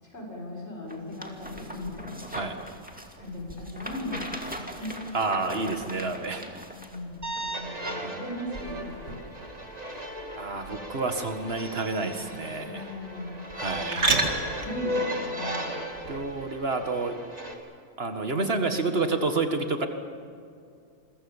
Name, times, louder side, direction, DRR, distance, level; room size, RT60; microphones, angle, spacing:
voice 1, 0.0-2.2 3.2-5.0 6.7-7.2 7.5-9.2 12.4-14.2 14.6-16.0, left 1 dB, 70° left, -2 dB, 7.3 m, -38 dB
sound 1, 0.9-7.0 7.4-7.5, equal, 5° right, 2.3 m, -41 dB
sound 2, 1.4-16.4, right 2 dB, 75° right, 2.7 m, -37 dB
voice 2, 5.1-6.6 8.0-8.1 10.3-12.9 13.5-14.1 16.1-17.2 18.0-19.9, right 3 dB, 60° right, 6 dB, 2.1 m, -29 dB
sound 3, 7.2-17.5, equal, 35° right, 2.7 m, -36 dB
28.5 x 22.5 x 7.3 m, 2.4 s
omnidirectional pair, 1.2 m